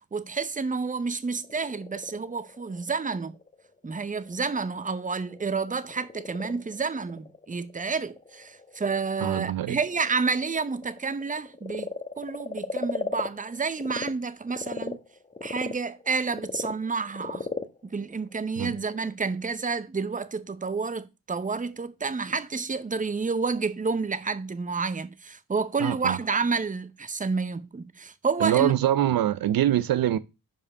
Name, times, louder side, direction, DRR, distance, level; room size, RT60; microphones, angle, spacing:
voice 1, 0.1-3.3 3.8-11.9 12.2-15.0 15.4-17.5 17.8-28.7, right 4 dB, 20° right, 0.8 m, -29 dB
Frog, 1.2-14.1 14.5-19.1, left 3 dB, 20° left, 1.0 m, -38 dB
voice 2, 9.2-9.8 18.6-18.8 25.8-26.2 28.4-30.2, right 12 dB, 70° right, 0.6 m, -24 dB
5.6 x 4.8 x 5.5 m
cardioid pair, 60°, 37 cm